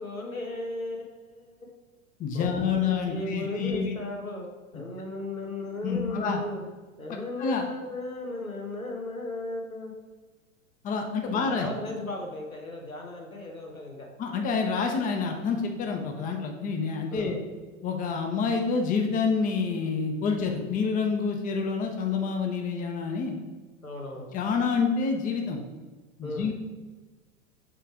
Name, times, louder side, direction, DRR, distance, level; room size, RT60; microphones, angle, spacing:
voice 1, 0.0-1.8 2.3-4.5 4.7-6.6 7.0-9.9 11.2-14.1 17.1-17.4 23.8-24.3 26.2-26.5, left 2 dB, 90° left, 0 dB, 1.5 m, -36 dB
voice 2, 2.2-3.9 5.8-6.4 7.4-7.6 10.8-11.7 14.2-17.4 17.8-23.3 24.2-25.6 26.2-26.5, left 5 dB, 20° left, 3 dB, 0.8 m, -28 dB
7.6 x 3.4 x 4.9 m, 1.3 s
figure-of-eight pair, 95°, 40 cm